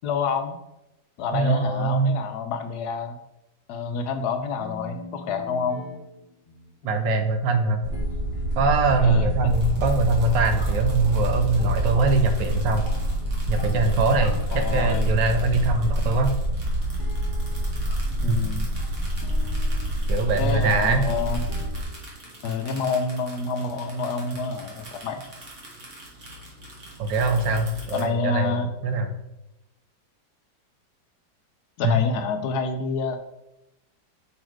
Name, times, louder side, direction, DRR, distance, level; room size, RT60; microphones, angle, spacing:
voice 1, 0.0-0.6 1.2-3.2 3.7-5.8 9.0-9.3 14.5-15.1 18.2-18.7 20.4-21.5 22.4-25.2 27.9-28.7 31.8-33.2, left 4 dB, 70° left, 7 dB, 1.1 m, -28 dB
voice 2, 1.3-2.1 6.8-7.8 8.6-12.9 13.5-16.3 18.3-18.4 20.1-21.0 27.0-29.1 31.8-32.0, right 3 dB, 85° right, 6 dB, 1.5 m, -22 dB
sound 1, 4.6-22.6, left 1 dB, 30° left, 1.4 m, -44 dB
sound 2, 7.8-21.8, right 1 dB, 25° right, 1.9 m, -26 dB
sound 3, 9.5-28.0, equal, 45° right, 1.8 m, -43 dB
6.2 x 4.1 x 4.5 m, 0.90 s
omnidirectional pair, 1.9 m